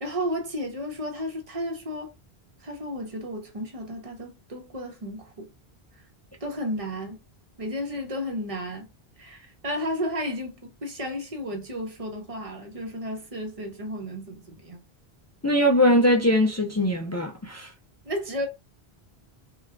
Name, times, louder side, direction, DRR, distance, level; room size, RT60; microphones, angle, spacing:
voice 1, 0.0-2.1 2.6-5.5 6.4-7.2 7.6-8.9 9.2-14.8 18.0-18.5, equal, 35° right, 0.8 m, -33 dB
voice 2, 15.4-17.7, equal, 25° left, 0.3 m, -21 dB
3.5 x 2.5 x 2.2 m
omnidirectional pair, 1.1 m